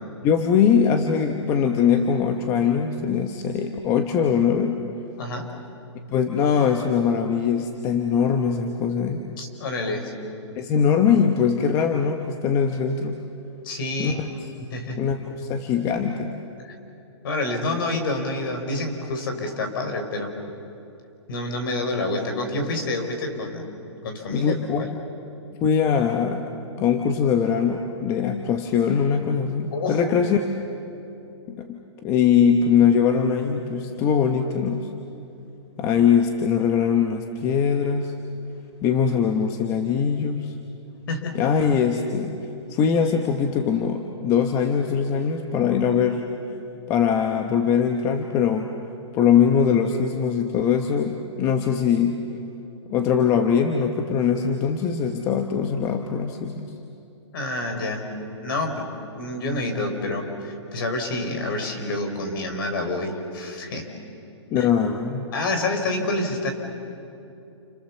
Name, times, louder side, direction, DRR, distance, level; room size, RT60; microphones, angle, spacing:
voice 1, 0.2-4.9 6.1-9.2 10.5-13.2 14.0-14.3 15.0-16.3 24.3-24.9 25.6-26.5 26.8-30.4 31.5-34.9 35.8-38.1 38.8-40.5 41.3-42.4 42.7-46.2 46.9-48.7 49.1-52.2 52.9-56.7 64.5-65.3, left 7 dB, 20° left, 5 dB, 1.0 m, -22 dB
voice 2, 5.2-5.5 9.4-10.1 13.6-14.2 14.6-15.0 17.2-20.3 21.3-23.7 24.0-25.0 29.7-30.3 41.1-41.4 57.3-58.1 58.4-58.9 59.2-63.9 64.6-64.7 65.3-66.5, left 2 dB, 50° left, 5 dB, 4.4 m, -28 dB
29.5 x 28.0 x 7.2 m, 2.7 s
hypercardioid pair, 165°, 15 cm